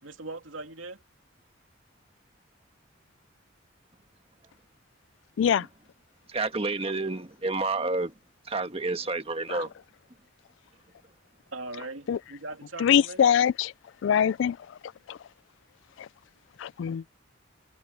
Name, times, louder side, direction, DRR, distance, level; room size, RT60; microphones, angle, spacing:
voice 1, 0.0-1.0 6.8-6.9 11.5-13.3, right 2 dB, 85° right, 2.9 m, -40 dB
voice 2, 6.3-8.1 8.5-9.7, right 3 dB, 30° right, 1.5 m, -29 dB
voice 3, 12.8-13.7 14.0-14.6 15.1-15.2 16.0-16.1 16.6-17.0, left 8 dB, 70° left, 0.3 m, -23 dB
head